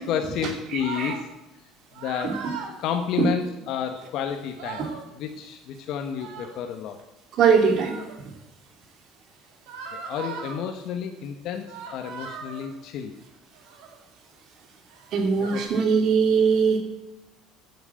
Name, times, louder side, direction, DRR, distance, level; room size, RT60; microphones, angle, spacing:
voice 1, 0.1-1.3 1.9-2.4 2.8-4.9 5.1-7.0 9.9-13.1 15.4-15.6, left 8 dB, 60° left, 5 dB, 1.1 m, -30 dB
voice 2, 0.7-1.1 2.2-2.3 3.2-3.3 4.8-4.9 7.4-8.0 15.1-16.8, right 6 dB, 50° right, 4 dB, 2.5 m, -21 dB
sound 1, 0.8-1.2 1.9-2.7 4.1-4.2 4.4-5.0 6.1-6.6 7.5-8.2 9.7-10.6 11.7-12.7 13.6-14.0 14.9-15.6, right 6 dB, 85° right, 2.7 m, -38 dB
9.2 x 7.6 x 8.5 m, 0.94 s
cardioid pair, 135°, 0 cm